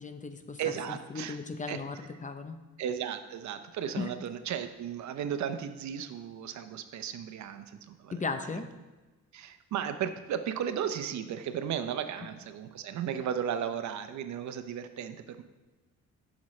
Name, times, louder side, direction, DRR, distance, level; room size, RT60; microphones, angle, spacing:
voice 1, 0.0-0.6 1.1-2.6 4.0-4.1 8.1-8.7, left 4 dB, 25° left, 8 dB, 0.7 m, -36 dB
voice 2, 0.6-1.4 1.7-1.8 2.8-8.6 9.3-15.4, right 8 dB, 70° right, 9 dB, 0.7 m, -35 dB
11.5 x 6.1 x 3.2 m, 1.2 s
cardioid pair, 90°, 30 cm